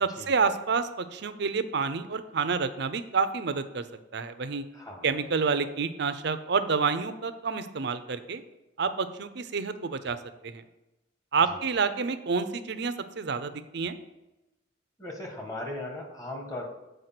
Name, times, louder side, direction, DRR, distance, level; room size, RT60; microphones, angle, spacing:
voice 1, 0.0-3.8 4.1-4.6 5.0-8.4 8.8-10.2 10.4-10.6 11.3-14.0, right 5 dB, 60° right, 11 dB, 0.6 m, -28 dB
voice 2, 4.7-5.2 11.5-11.6 15.0-16.7, left 1 dB, 20° left, 1 dB, 1.6 m, -38 dB
8.0 x 4.8 x 5.9 m, 0.98 s
head